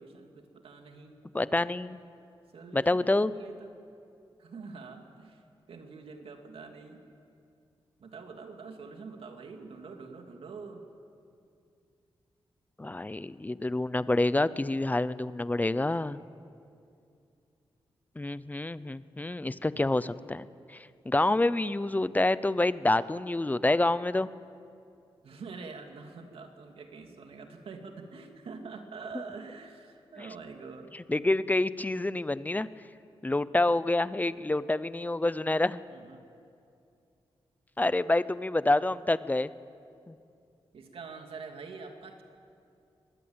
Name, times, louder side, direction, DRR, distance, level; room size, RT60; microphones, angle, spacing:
voice 1, 0.0-1.2 2.5-3.7 4.4-5.4 5.7-7.0 8.0-10.9 20.0-20.1 21.7-22.0 25.2-30.9 32.5-32.7 35.9-36.2 38.7-38.9 40.7-42.2, right 4 dB, 80° right, 4 dB, 2.6 m, -45 dB
voice 2, 1.3-2.0 2.7-3.3 12.8-16.2 18.2-20.5 21.1-24.3 30.2-30.3 31.1-32.7 33.2-35.8 37.8-39.5 40.1-40.2, left 2 dB, 15° left, 16 dB, 0.7 m, -27 dB
23.5 x 20.5 x 8.8 m, 2.5 s
cardioid pair, 85°, 10 cm